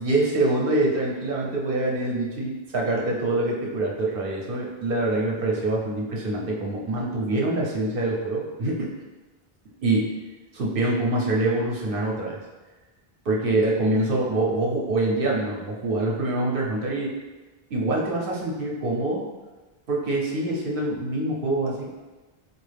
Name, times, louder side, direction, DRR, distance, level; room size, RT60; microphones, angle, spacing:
voice 1, 0.0-8.9 9.8-10.1 10.5-12.4 13.2-17.1 17.7-19.3 19.9-21.9, right 2 dB, 65° right, -2 dB, 0.9 m, -25 dB
4.5 x 2.4 x 3.3 m, 1.2 s
omnidirectional pair, 1.0 m